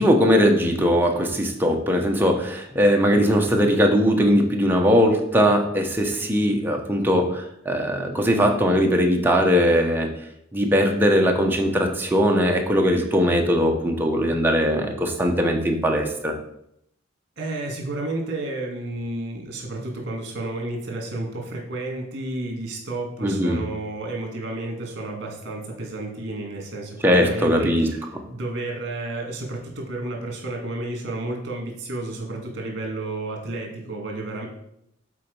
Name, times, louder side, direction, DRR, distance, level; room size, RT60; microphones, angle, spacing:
voice 1, 0.0-10.1 10.5-16.3 23.2-23.6 27.0-27.9, equal, 10° right, 2 dB, 1.0 m, -20 dB
voice 2, 17.4-28.0 28.3-34.5, right 2 dB, 55° right, 0 dB, 2.2 m, -31 dB
7.5 x 4.2 x 5.4 m, 0.76 s
head